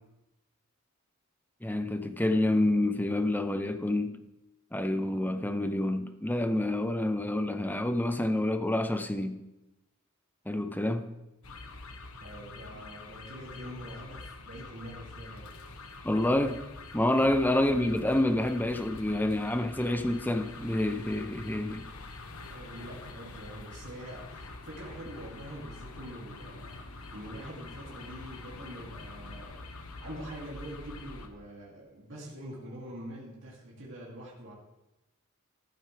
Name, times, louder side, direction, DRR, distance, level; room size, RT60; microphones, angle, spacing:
voice 1, 1.6-4.2 4.7-9.4 10.5-11.1 16.0-16.6 16.9-21.9, left 1 dB, 10° left, 0.7 m, -28 dB
sound 1, 11.4-31.3, left 3 dB, 80° left, 1.3 m, -45 dB
voice 2, 12.2-15.4 22.5-29.6 30.0-34.5, right 1 dB, 55° right, 2.8 m, -45 dB
14.0 x 11.5 x 3.5 m
head